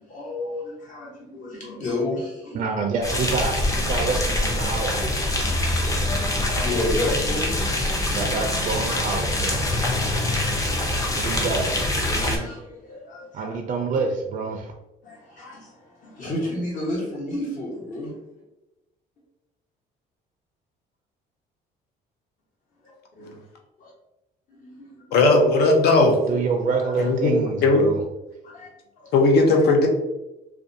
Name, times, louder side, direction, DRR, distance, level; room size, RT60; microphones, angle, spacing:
voice 1, 0.0-2.6 5.1-5.4 6.4-7.7 8.1-8.2 9.8-11.4 12.0-13.6 15.0-18.1 23.1-23.4 23.8-23.9 24.5-25.3 26.7-27.1 28.4-28.7 29.0-29.1, left 1 dB, 50° left, -3 dB, 1.1 m, -32 dB
voice 2, 2.5-5.0 8.1-9.7 11.2-11.7 13.3-14.7 26.3-28.0, right 4 dB, 50° right, 2 dB, 0.4 m, -27 dB
sound 1, 3.0-12.4, left 1 dB, 20° left, 0.5 m, -24 dB
voice 3, 25.1-26.2 27.0-27.8 29.1-29.9, left 2 dB, 70° left, 2 dB, 0.6 m, -17 dB
2.5 x 2.2 x 2.6 m, 0.96 s
cardioid pair, 110°, 17 cm